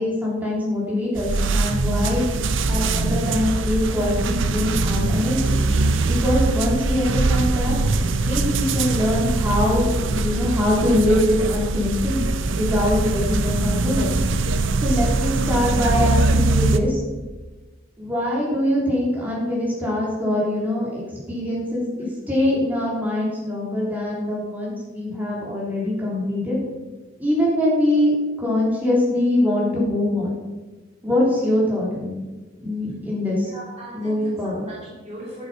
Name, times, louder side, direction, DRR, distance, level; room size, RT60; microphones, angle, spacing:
voice 1, 0.0-2.2 2.7-5.6 6.0-7.8 8.2-12.2 12.5-14.1 14.8-17.0 18.0-26.6 27.2-28.1 28.4-30.4 31.0-32.3 32.6-33.5 33.9-34.7, left 1 dB, 10° right, -6 dB, 3.3 m, -23 dB
sound 1, 1.2-16.8, right 3 dB, 70° right, 0.6 m, -22 dB
voice 2, 33.4-35.5, right 1 dB, 35° right, -6 dB, 2.4 m, -39 dB
11.0 x 7.2 x 5.6 m, 1.2 s
head